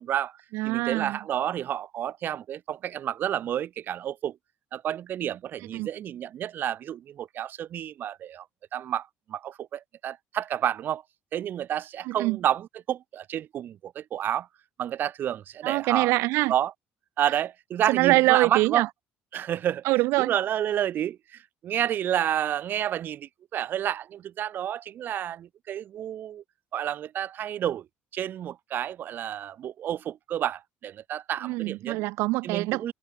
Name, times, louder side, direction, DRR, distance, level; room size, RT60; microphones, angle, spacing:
voice 1, 0.0-0.4 0.7-4.4 4.7-8.5 8.7-11.0 11.3-14.5 14.8-16.1 16.5-16.7 17.2-18.9 19.3-19.8 20.2-26.4 26.7-27.9 28.1-32.0 32.4-32.9, right 10 dB, 50° right, 6.9 m, -30 dB
voice 2, 0.5-1.2 5.7-5.9 12.0-12.4 15.6-16.5 17.9-18.9 19.8-20.3 31.4-32.9, right 21 dB, 85° right, 5.6 m, -24 dB
cardioid pair, 135°, 4 cm